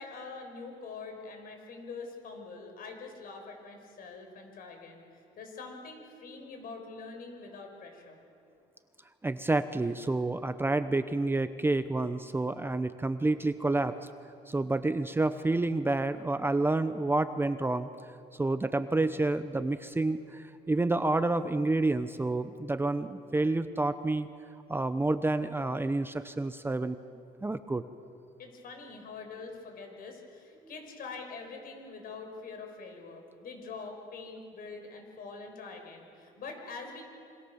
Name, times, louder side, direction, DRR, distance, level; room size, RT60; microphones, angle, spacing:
voice 1, 0.0-8.2 28.4-37.0, left 4 dB, 60° left, 4 dB, 5.8 m, -44 dB
voice 2, 9.2-14.0 14.5-17.9 18.4-24.3 24.7-27.0 27.4-27.8, right 2 dB, 15° right, 11 dB, 0.8 m, -29 dB
26.5 x 25.0 x 7.1 m, 2.5 s
cardioid pair, 110°, 17 cm